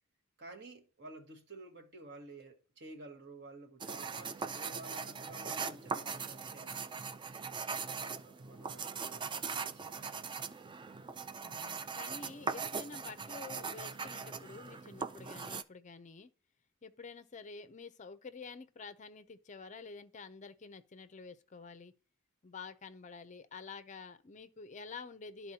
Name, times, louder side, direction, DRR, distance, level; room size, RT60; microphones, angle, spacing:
voice 1, 0.4-6.8 7.7-10.3, right 2 dB, 55° right, 1.4 m, -52 dB
sound 1, 3.8-15.6, right 5 dB, 20° right, 0.3 m, -40 dB
voice 2, 11.4-16.3 16.8-21.9 22.4-25.5, left 4 dB, 35° left, 0.5 m, -49 dB
12.0 x 4.1 x 2.8 m
head